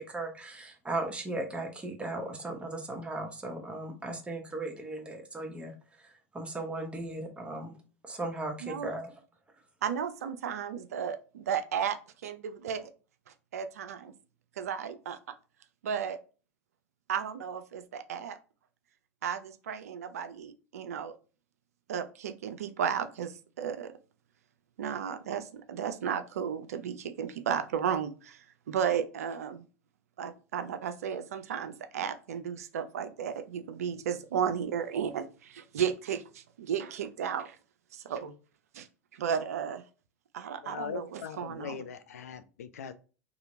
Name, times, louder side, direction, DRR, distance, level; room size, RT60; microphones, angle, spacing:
voice 1, 0.0-5.7 6.0-7.8 8.0-9.1, right 2 dB, 15° right, 0.9 m, -37 dB
voice 2, 9.8-12.9 13.5-14.1 14.6-15.2 15.8-16.2 17.1-18.4 19.2-21.1 21.9-23.9 24.8-29.6 30.2-37.6 37.9-38.3 38.7-38.9 39.1-39.8 40.3-41.8, right 8 dB, 75° right, 0.4 m, -34 dB
voice 3, 40.6-42.9, left 7 dB, 75° left, 0.3 m, -40 dB
2.8 x 2.6 x 2.6 m
hypercardioid pair, 85°, 8 cm